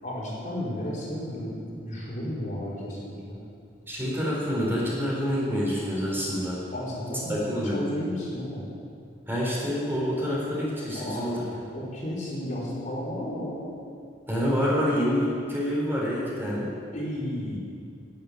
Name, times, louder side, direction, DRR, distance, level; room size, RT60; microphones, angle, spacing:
voice 1, 0.0-3.4 6.7-8.7 10.9-11.3 11.7-13.7 16.9-17.6, left 1 dB, 45° left, -6 dB, 4.4 m, -33 dB
voice 2, 3.9-6.6 7.3-7.8 9.3-11.5 14.3-16.7, equal, 10° right, -5 dB, 3.8 m, -27 dB
10.5 x 10.5 x 9.8 m, 2.4 s
head